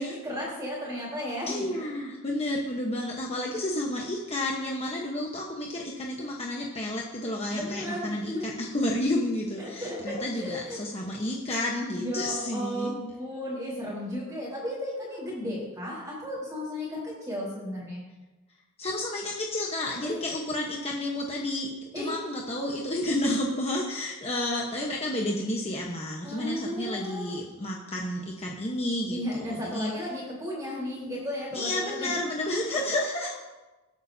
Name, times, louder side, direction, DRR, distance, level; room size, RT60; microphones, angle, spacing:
voice 1, 0.0-1.9 7.5-8.5 9.6-10.8 12.0-18.0 20.0-20.2 21.9-22.1 26.2-27.3 29.1-32.1, left 1 dB, 15° right, -8 dB, 4.0 m, -34 dB
voice 2, 1.5-12.9 18.8-21.7 21.9-29.9 31.5-33.3, left 1 dB, 30° left, -1 dB, 1.1 m, -31 dB
20.0 x 8.8 x 2.8 m, 1.1 s
head